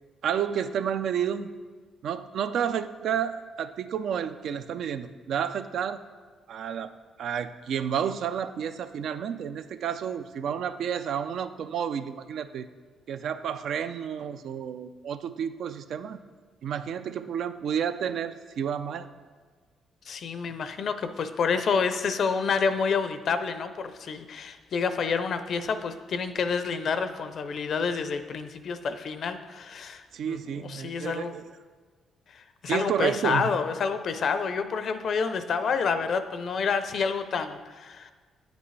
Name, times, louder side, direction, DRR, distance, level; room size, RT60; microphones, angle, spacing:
voice 1, 0.2-1.5 2.0-6.0 6.5-6.9 7.2-12.7 13.1-16.2 16.6-19.1 30.1-31.4 32.7-33.5, right 8 dB, 70° right, 10 dB, 0.4 m, -30 dB
voice 2, 20.1-31.3 32.3-38.1, left 5 dB, 60° left, 10 dB, 0.5 m, -28 dB
8.5 x 8.1 x 3.2 m, 1.4 s
cardioid pair, 90°, 0 cm